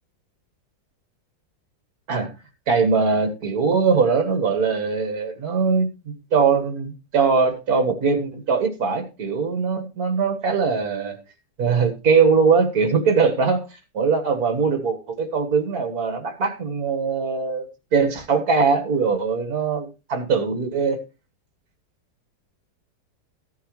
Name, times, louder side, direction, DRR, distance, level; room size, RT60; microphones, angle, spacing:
voice 1, 2.7-11.2 11.6-13.6 13.9-21.0, right 5 dB, 55° right, 5 dB, 2.1 m, -21 dB
14.5 x 9.4 x 3.2 m, 0.29 s
omnidirectional pair, 1.9 m